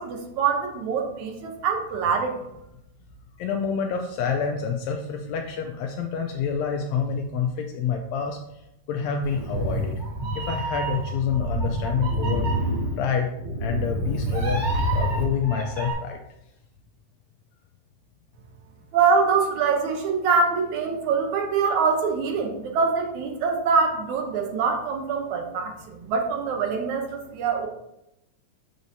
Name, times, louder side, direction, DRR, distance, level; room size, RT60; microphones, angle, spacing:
voice 1, 0.0-2.3 18.9-27.7, right 5 dB, 75° right, 3 dB, 2.1 m, -24 dB
voice 2, 3.4-8.4 8.9-9.9 10.4-12.5 13.0-13.3 13.6-14.6 14.9-16.2, left 6 dB, 80° left, 3 dB, 1.6 m, -27 dB
Meow, 9.2-15.9, right 1 dB, 30° right, 2.2 m, -27 dB
7.0 x 6.5 x 2.7 m, 0.85 s
omnidirectional pair, 3.6 m